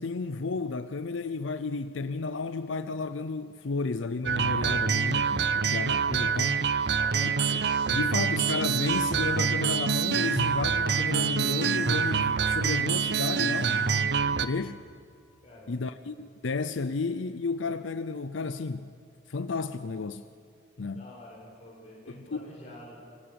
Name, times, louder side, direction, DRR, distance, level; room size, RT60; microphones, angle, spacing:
voice 1, 0.0-6.6 7.2-7.6 7.9-14.8 15.7-18.9 19.3-20.2 20.8-21.1 22.1-22.5, left 4 dB, 75° left, 11 dB, 0.6 m, -32 dB
sound 1, 4.3-14.5, right 6 dB, 55° right, 0.6 m, -26 dB
voice 2, 6.9-7.3 15.4-15.8 20.9-23.0, left 1 dB, 35° left, -4 dB, 7.7 m, -47 dB
26.0 x 18.0 x 7.0 m, 2.5 s
head